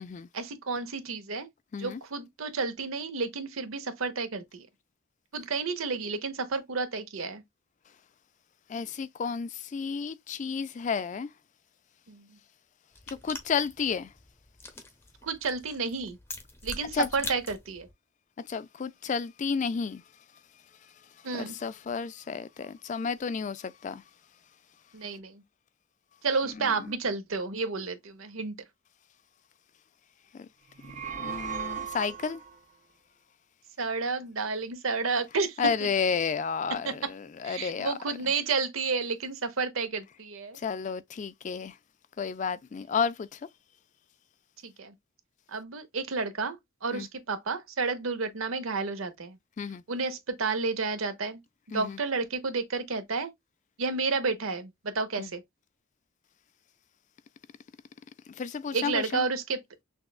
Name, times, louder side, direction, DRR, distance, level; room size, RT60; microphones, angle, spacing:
voice 1, 0.3-1.5 1.8-4.7 5.3-7.4 12.1-12.3 15.2-16.2 16.6-17.9 21.2-21.5 24.9-25.4 26.2-28.6 33.8-35.6 36.8-37.1 37.4-40.6 44.6-44.9 45.5-49.4 49.9-51.4 51.7-53.3 53.8-55.4 58.7-59.6, right 4 dB, 90° right, 0.8 m, -31 dB
voice 2, 8.7-11.3 13.1-14.1 16.9-17.1 18.5-20.0 21.3-24.0 26.6-26.7 30.3-30.5 31.1-32.4 35.6-38.0 40.6-41.7 42.2-43.4 46.9-47.1 49.6-49.8 51.7-52.0 55.2-55.3 58.3-59.2, left 6 dB, 35° left, 0.3 m, -31 dB
sound 1, 12.9-17.9, left 2 dB, 10° left, 0.7 m, -43 dB
sound 2, 30.7-32.6, right 8 dB, 35° right, 0.5 m, -37 dB
6.1 x 2.3 x 2.3 m
head